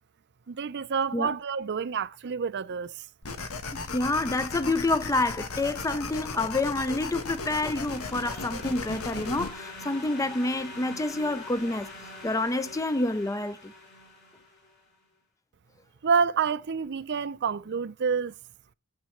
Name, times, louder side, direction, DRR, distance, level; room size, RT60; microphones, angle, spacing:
voice 1, 0.5-2.9 16.0-18.3, right 6 dB, 55° right, 0.5 m, -28 dB
sound 1, 3.2-9.5, left 3 dB, 85° left, 1.3 m, -36 dB
voice 2, 3.7-11.9 12.2-13.7, left 2 dB, 15° left, 0.5 m, -28 dB
sound 2, 6.3-14.8, left 2 dB, 50° left, 3.6 m, -45 dB
19.0 x 7.4 x 3.1 m
head